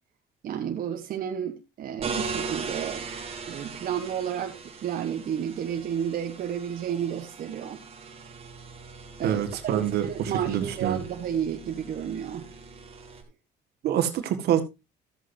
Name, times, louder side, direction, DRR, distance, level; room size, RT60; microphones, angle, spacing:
voice 1, 0.4-3.0 3.5-7.8 9.2-12.5, right 9 dB, 55° right, 1.2 m, -31 dB
sound 1, 2.0-13.2, right 4 dB, 35° right, 2.3 m, -39 dB
voice 2, 9.2-11.0 13.8-14.6, right 10 dB, 70° right, 1.7 m, -26 dB
14.0 x 8.1 x 2.7 m
cardioid pair, 110°, 17 cm